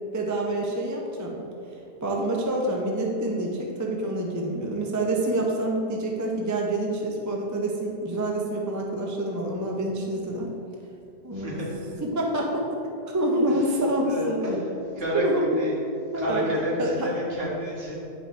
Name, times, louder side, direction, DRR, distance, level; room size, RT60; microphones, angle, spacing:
voice 1, 0.1-1.4 2.0-10.5 11.2-11.6 12.1-12.8 13.1-14.5 15.1-15.4 16.1-16.9, right 1 dB, 20° right, -1 dB, 0.6 m, -27 dB
voice 2, 11.3-11.8 13.5-13.8 14.0-15.8 16.1-18.0, right 1 dB, 60° right, -5 dB, 1.8 m, -30 dB
9.0 x 5.4 x 3.3 m, 2.8 s
omnidirectional pair, 1.1 m